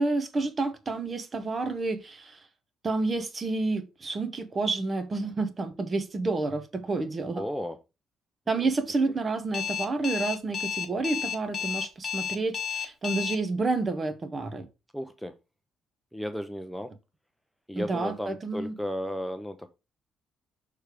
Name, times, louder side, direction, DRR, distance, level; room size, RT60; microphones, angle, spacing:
voice 1, 0.0-2.4 2.8-7.4 8.5-14.7 17.7-18.7, right 3 dB, 35° right, 1.0 m, -29 dB
voice 2, 7.3-7.8 8.6-8.7 14.9-15.3 16.1-16.9 17.7-19.7, equal, ahead, 0.6 m, -34 dB
Alarm, 9.5-13.4, left 7 dB, 45° left, 1.0 m, -31 dB
6.4 x 3.3 x 5.0 m
cardioid pair, 95°, 0 cm